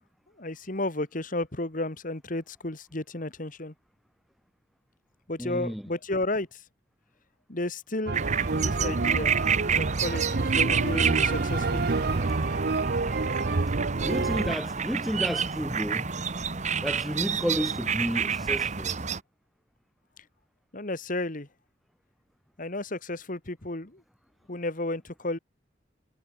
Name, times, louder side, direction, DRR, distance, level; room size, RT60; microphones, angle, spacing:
voice 1, 0.4-3.7 5.3-6.6 7.5-8.2 8.6-9.3 9.7-11.8 20.7-21.5 22.6-24.0 24.5-25.4, left 2 dB, 50° left, 2.2 m, -32 dB
voice 2, 5.4-5.9 14.0-16.1 16.8-19.0, equal, ahead, 0.7 m, -31 dB
sound 1, 8.1-19.2, right 6 dB, 40° right, 1.4 m, -29 dB
sound 2, 8.1-14.6, right 3 dB, 60° right, 0.8 m, -28 dB
head